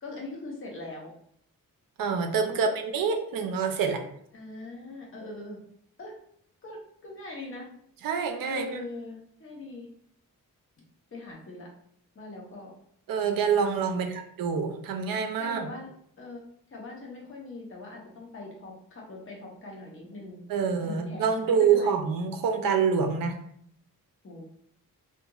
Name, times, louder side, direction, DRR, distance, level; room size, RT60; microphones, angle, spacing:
voice 1, 0.0-1.1 2.5-2.7 4.3-5.6 6.0-6.1 6.6-7.7 8.5-9.9 11.1-11.7 12.1-12.7 13.9-14.1 15.4-15.9 16.2-16.4 16.7-20.4 20.8-22.0 24.2-24.4, left 2 dB, 35° left, -2 dB, 0.8 m, -41 dB
voice 2, 2.0-4.0 8.0-8.8 13.1-15.6 20.5-23.4, right 6 dB, 70° right, 5 dB, 0.5 m, -26 dB
2.8 x 2.5 x 2.3 m, 0.67 s
wide cardioid pair, 130°, 35 cm